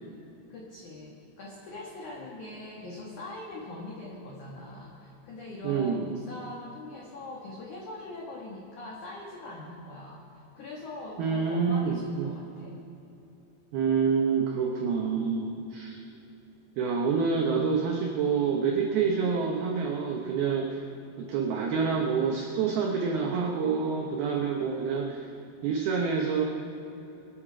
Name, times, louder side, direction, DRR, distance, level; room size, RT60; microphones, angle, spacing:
voice 1, 0.5-12.8, left 2 dB, 80° left, -2 dB, 1.7 m, -42 dB
voice 2, 5.6-6.1 11.2-12.3 13.7-16.0 16.8-20.9 21.2-25.3 25.6-26.4, right 5 dB, 85° right, 1 dB, 2.2 m, -27 dB
25.0 x 9.1 x 5.0 m, 2.9 s
omnidirectional pair, 5.9 m